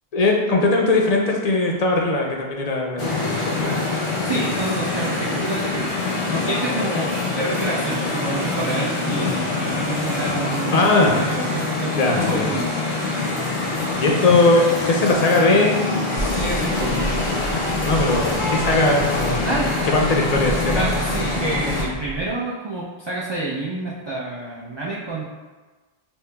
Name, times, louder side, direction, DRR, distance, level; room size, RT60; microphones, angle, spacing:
voice 1, 0.1-3.7 10.7-11.3 11.9-12.6 14.0-15.8 17.8-19.4 19.8-20.9, left 2 dB, 50° left, 0 dB, 0.5 m, -19 dB
sound 1, 3.0-21.9, left 3 dB, 90° left, 1.2 m, -25 dB
voice 2, 4.2-12.7 16.3-17.1 19.4-19.7 20.7-25.2, right 2 dB, 40° right, -6 dB, 0.4 m, -28 dB
sound 2, 16.2-22.3, right 2 dB, 60° right, 1.1 m, -30 dB
5.4 x 2.8 x 2.2 m, 1.3 s
omnidirectional pair, 1.1 m